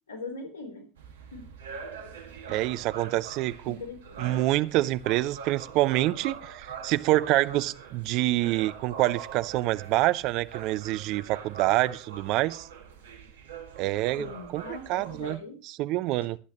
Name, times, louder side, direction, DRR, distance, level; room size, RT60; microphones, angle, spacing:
voice 1, 0.1-0.9 1.3-1.5 3.7-4.2 14.2-15.6 16.2-16.3, left 3 dB, 75° left, 3.5 m, -40 dB
sound 1, 1.0-15.4, right 6 dB, 75° right, 1.8 m, -43 dB
voice 2, 2.5-3.8 4.2-12.7 13.8-14.3 14.5-14.6 14.9-15.4 15.7-16.4, right 17 dB, 55° right, 0.7 m, -26 dB
22.0 x 8.4 x 3.0 m
figure-of-eight pair, 70°, 0 cm